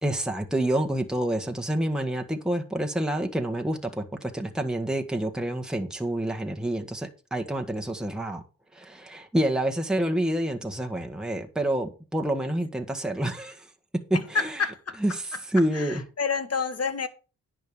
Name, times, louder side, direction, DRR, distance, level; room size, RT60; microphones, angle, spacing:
voice 1, 0.0-8.4 8.7-13.7 14.3-14.6 15.0-16.0, right 1 dB, ahead, 1.6 m, -28 dB
voice 2, 14.1-15.0 15.3-15.4 15.7-17.1, left 5 dB, 40° left, 1.6 m, -29 dB
10.5 x 4.7 x 7.0 m
supercardioid pair, 45°, 37 cm